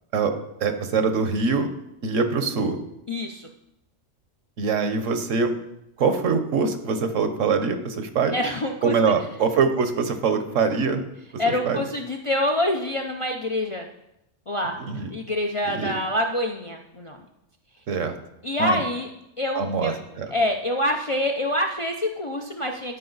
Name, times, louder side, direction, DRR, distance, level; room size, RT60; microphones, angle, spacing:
voice 1, 0.6-1.7 2.0-2.8 4.6-5.6 6.0-8.3 8.8-11.0 11.5-11.8 14.9-15.1 15.7-16.0 17.9-18.1 18.6-18.8 19.6-20.3, right 5 dB, 80° right, 8 dB, 1.3 m, -23 dB
voice 2, 3.1-3.5 8.3-8.9 11.4-13.9 14.5-14.7 15.1-17.2 18.4-19.1 19.4-19.9 20.3-23.0, left 1 dB, 40° left, 2 dB, 0.4 m, -26 dB
13.5 x 5.2 x 4.0 m, 0.84 s
omnidirectional pair, 1.3 m